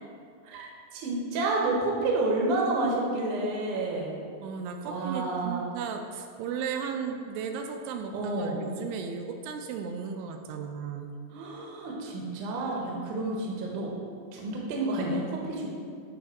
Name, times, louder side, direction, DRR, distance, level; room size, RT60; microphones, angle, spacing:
voice 1, 0.4-4.2 4.8-5.7 8.1-8.6 11.3-13.9 14.3-15.7, right 2 dB, 70° right, -2 dB, 2.1 m, -30 dB
voice 2, 4.4-11.1, right 6 dB, 85° right, 4 dB, 2.6 m, -35 dB
7.4 x 3.6 x 5.8 m, 2.2 s
omnidirectional pair, 4.7 m